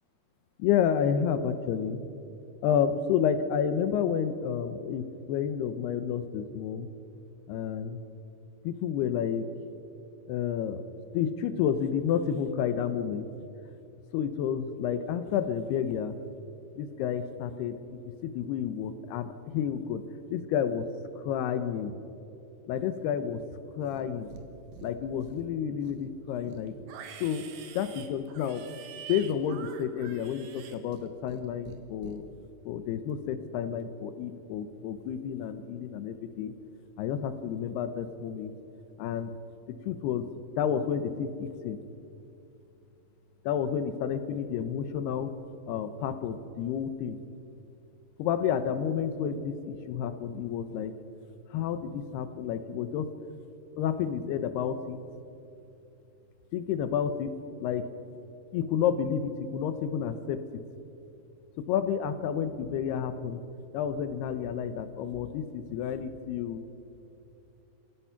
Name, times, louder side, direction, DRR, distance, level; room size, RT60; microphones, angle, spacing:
voice 1, 0.6-2.0 2.6-6.9 7.5-8.0 8.6-9.5 10.3-10.8 11.1-13.3 14.1-16.2 16.8-20.0 20.3-20.9 21.2-21.9 22.7-23.4 23.8-24.3 24.8-26.8 27.2-27.5 27.7-28.6 29.1-32.2 32.7-36.5 37.0-38.5 39.0-39.3 39.9-40.3 40.6-41.8 43.5-45.3 45.7-47.2 48.2-50.9 51.5-53.1 53.8-55.0 56.5-57.3 57.6-57.9 58.5-60.4 61.6-63.4 63.7-66.6, left 8 dB, 75° left, 10 dB, 2.8 m, -30 dB
Livestock farm animals working animals, 23.8-24.5 24.7-25.4 25.8-31.4 31.7-32.2, right 8 dB, 65° right, 2.9 m, -46 dB
28.5 x 17.0 x 5.8 m, 2.8 s
omnidirectional pair, 4.9 m